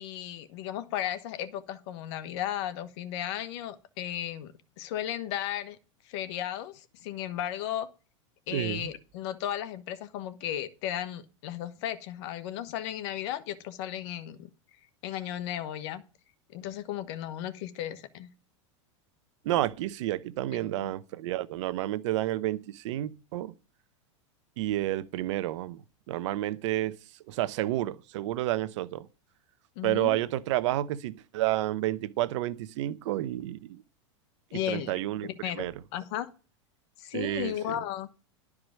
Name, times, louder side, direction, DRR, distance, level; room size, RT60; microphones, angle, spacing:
voice 1, 0.0-5.8 6.0-7.9 8.5-14.5 15.0-16.0 16.5-18.3 20.5-20.9 29.8-30.2 34.5-34.9 35.2-35.6 35.9-36.3 37.0-38.1, left 11 dB, 60° left, 1.2 m, -35 dB
voice 2, 8.5-8.9 19.4-23.5 24.6-26.9 27.3-29.1 29.8-33.8 34.7-35.3 35.6-35.7 37.1-37.8, right 14 dB, 70° right, 0.8 m, -30 dB
12.0 x 4.9 x 6.3 m
supercardioid pair, 120°, 16 cm